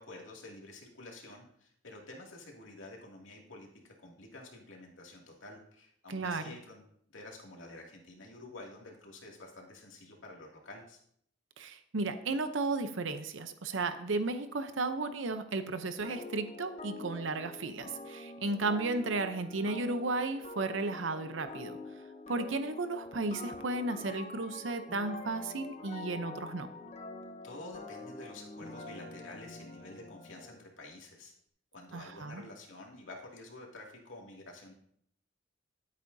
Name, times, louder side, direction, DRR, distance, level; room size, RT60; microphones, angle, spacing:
voice 1, 0.0-11.0 27.4-31.3 31.7-34.7, left 2 dB, 85° left, -1 dB, 2.4 m, -49 dB
voice 2, 6.1-6.4 11.6-21.8 22.3-26.7 31.9-32.4, right 3 dB, 75° right, 9 dB, 0.7 m, -34 dB
sound 1, 16.0-30.6, left 2 dB, 35° left, 0.8 m, -46 dB
13.0 x 8.4 x 2.7 m, 0.67 s
head